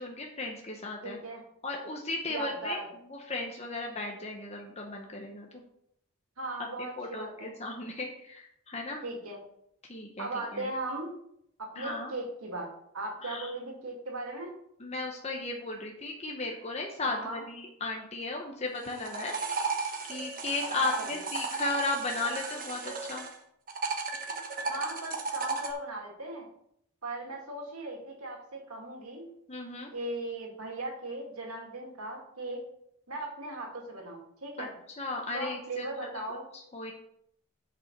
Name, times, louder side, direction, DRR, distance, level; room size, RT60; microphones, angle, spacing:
voice 1, 0.0-1.2 1.6-2.8 3.1-5.6 6.8-9.0 9.9-10.7 11.8-12.1 13.2-13.5 14.8-19.4 20.0-23.3 29.5-29.9 34.6-34.7 35.0-36.1 36.5-36.9, left 3 dB, 30° left, 1 dB, 1.0 m, -35 dB
voice 2, 1.0-1.4 2.3-2.9 6.4-7.5 9.0-9.4 10.2-11.1 11.6-12.7 12.9-14.5 17.0-17.4 20.7-21.2 24.7-26.5 27.0-29.3 29.9-32.7 33.1-34.7 35.3-36.5, right 2 dB, 90° right, 0 dB, 2.4 m, -38 dB
sound 1, 18.8-23.3 23.7-25.7, right 4 dB, 40° right, 1.2 m, -34 dB
6.8 x 5.5 x 6.8 m, 0.74 s
head